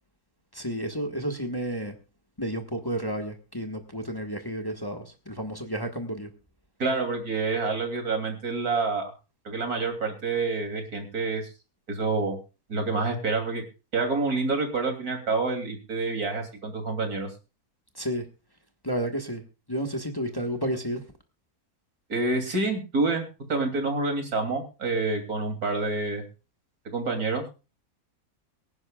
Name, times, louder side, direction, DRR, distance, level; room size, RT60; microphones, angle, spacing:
voice 1, 0.5-1.9 2.4-6.3 18.0-18.2 18.8-19.4 19.7-21.0, equal, 15° left, 4 dB, 1.4 m, -31 dB
voice 2, 6.8-9.1 9.5-11.5 11.9-12.4 12.7-13.6 13.9-17.3 22.1-26.2 26.9-27.5, right 3 dB, 80° right, 4 dB, 3.4 m, -27 dB
24.0 x 10.5 x 2.4 m, 0.30 s
omnidirectional pair, 1.6 m